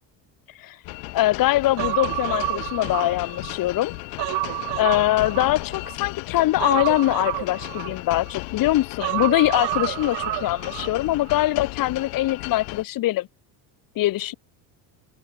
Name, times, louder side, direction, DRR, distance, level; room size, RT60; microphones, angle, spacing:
sound 1, 0.8-12.8, left 38 dB, 80° left, 4.5 m, -35 dB
voice 1, 1.1-3.9 4.8-13.3 14.0-14.3, left 15 dB, 50° left, 2.6 m, -23 dB
Human voice, 1.8-3.6 3.9-5.9 6.6-8.4 9.0-10.9 11.2-11.3, right 21 dB, 65° right, 4.6 m, -29 dB
open air
cardioid pair, 140°, 43 cm